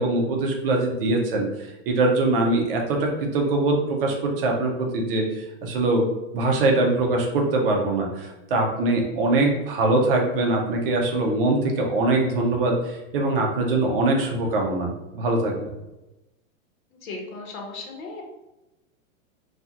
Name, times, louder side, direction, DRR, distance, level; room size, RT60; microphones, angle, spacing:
voice 1, 0.0-6.1 6.3-15.6, right 2 dB, 45° right, 1 dB, 0.5 m, -23 dB
voice 2, 17.0-18.2, left 3 dB, 85° left, 1 dB, 0.9 m, -36 dB
2.7 x 2.4 x 2.3 m, 0.98 s
supercardioid pair, 165°, 41 cm